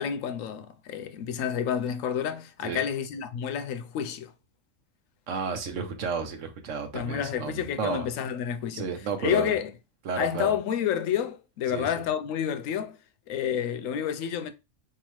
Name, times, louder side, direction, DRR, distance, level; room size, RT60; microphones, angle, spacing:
voice 1, 0.0-4.3 6.9-8.9 9.2-9.7 10.2-13.0 13.3-14.5, left 9 dB, 85° left, 1.0 m, -29 dB
voice 2, 5.3-8.1 8.7-9.5 10.0-10.5 11.7-12.0, right 5 dB, 75° right, 1.2 m, -32 dB
4.6 x 2.9 x 3.1 m
omnidirectional pair, 1.3 m